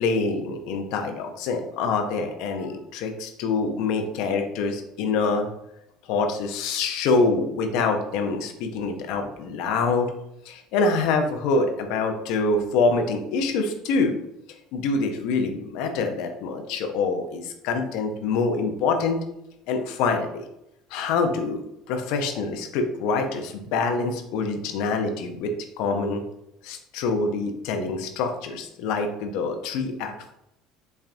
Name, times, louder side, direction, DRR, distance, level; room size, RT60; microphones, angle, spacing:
voice 1, 0.0-5.5 6.1-10.1 10.5-14.2 14.7-19.2 19.7-20.4 20.9-21.6 21.9-26.2 26.6-30.3, left 4 dB, 70° left, 5 dB, 0.6 m, -25 dB
5.5 x 2.4 x 2.5 m, 0.84 s
supercardioid pair, 85°, 0 cm